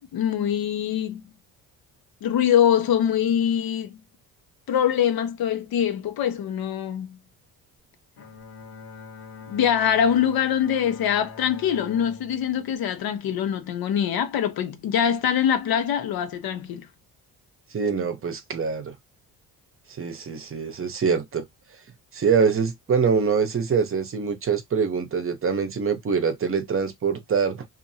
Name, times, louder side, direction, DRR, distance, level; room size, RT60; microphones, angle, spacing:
voice 1, 0.1-1.2 2.2-4.0 4.7-7.1 9.5-16.9, left 9 dB, 65° left, 0.8 m, -23 dB
Bowed string instrument, 8.2-13.6, left 4 dB, 90° left, 1.2 m, -44 dB
voice 2, 17.7-18.9 20.0-21.4 22.1-27.7, right 6 dB, 35° right, 0.8 m, -24 dB
2.6 x 2.5 x 2.7 m
cardioid pair, 95°, 39 cm